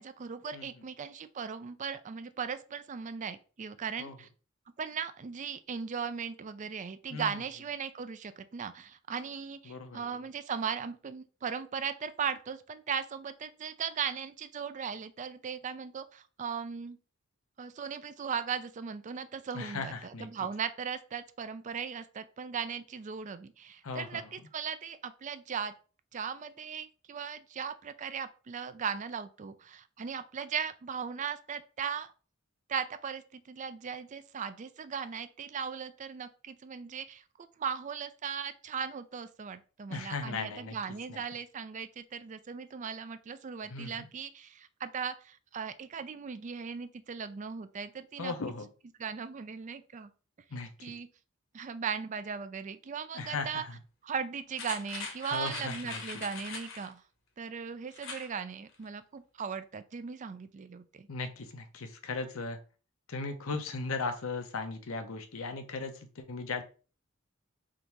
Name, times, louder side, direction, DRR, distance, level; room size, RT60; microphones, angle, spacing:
voice 1, 0.0-4.3 4.8-17.0 17.6-25.7 26.1-32.1 32.7-37.2 37.6-48.3 49.0-50.1 50.8-51.1 51.5-53.6 54.0-57.0 57.4-61.1, right 6 dB, 35° right, 12 dB, 0.4 m, -38 dB
voice 2, 7.1-7.4 9.7-10.1 19.5-20.3 23.8-24.3 39.9-40.8 41.1-41.2 43.7-44.1 48.2-48.7 50.5-50.9 53.1-53.8 55.3-56.0 61.1-62.6 63.1-66.6, left 3 dB, 90° left, 7 dB, 0.7 m, -37 dB
sound 1, 54.5-56.9 57.9-58.3 58.7-58.8, left 4 dB, 65° left, 1.0 m, -42 dB
3.7 x 2.6 x 4.4 m, 0.37 s
head